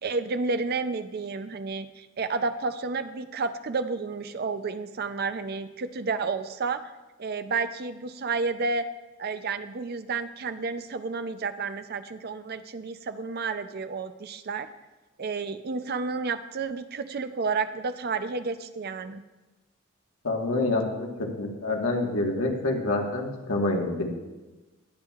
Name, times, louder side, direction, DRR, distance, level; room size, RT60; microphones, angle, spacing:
voice 1, 0.0-6.9 7.2-8.9 9.2-14.7 15.2-19.2, right 4 dB, 45° right, 10 dB, 0.5 m, -31 dB
voice 2, 20.2-21.1 21.4-24.1, left 2 dB, 85° left, 1 dB, 1.5 m, -27 dB
19.0 x 7.2 x 2.4 m, 1.1 s
head